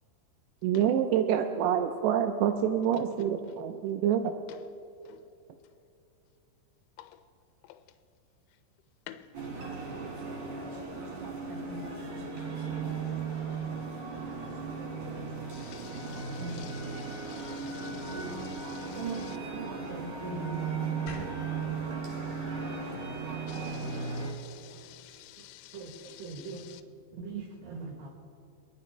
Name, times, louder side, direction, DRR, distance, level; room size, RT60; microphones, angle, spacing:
voice 1, 0.6-4.2, right 9 dB, 90° right, 2.4 m, -27 dB
sound 1, 9.3-24.3, right 4 dB, 55° right, 2.4 m, -36 dB
voice 2, 11.2-12.6 14.8-14.9 16.4-16.6 18.1-18.2 19.0-22.1 22.4-22.9 23.2-23.7 24.8-24.9 25.4-25.5 25.7-26.7 27.2-28.1, right 4 dB, 70° right, 2.3 m, -43 dB
voice 3, 15.5-19.4 23.5-26.8, left 14 dB, 80° left, 3.0 m, -51 dB
sound 2, 21.1-24.2, left 2 dB, 60° left, 2.5 m, -49 dB
24.5 x 11.5 x 3.2 m
omnidirectional pair, 5.7 m